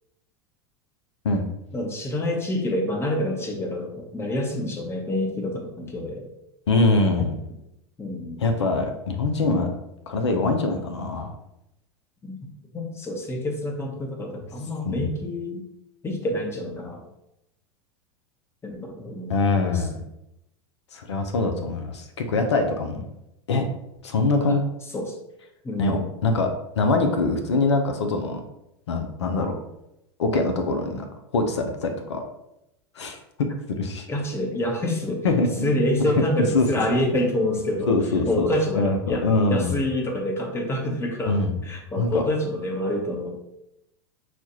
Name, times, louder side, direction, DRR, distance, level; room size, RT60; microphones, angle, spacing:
voice 1, 1.7-6.3 7.2-7.3 8.0-8.4 12.2-12.4 12.7-15.6 16.0-17.0 18.6-19.9 24.5-24.6 24.9-25.2 25.6-26.1 34.1-35.3 35.6-38.0 38.3-43.4, left 1 dB, 15° left, 2 dB, 0.9 m, -27 dB
voice 2, 6.7-7.4 8.4-9.7 10.1-11.3 14.8-15.1 19.3-20.0 20.9-23.1 23.5-23.7 24.0-24.6 25.8-28.4 28.9-29.6 30.2-31.1 31.3-32.2 33.0-33.2 33.8-34.1 35.2-35.7 36.5-36.7 37.9-38.5 38.8-39.7 41.3-41.5 42.0-42.2, left 3 dB, 85° left, 5 dB, 0.6 m, -23 dB
5.8 x 2.4 x 2.9 m, 0.85 s
hypercardioid pair, 95°, 14 cm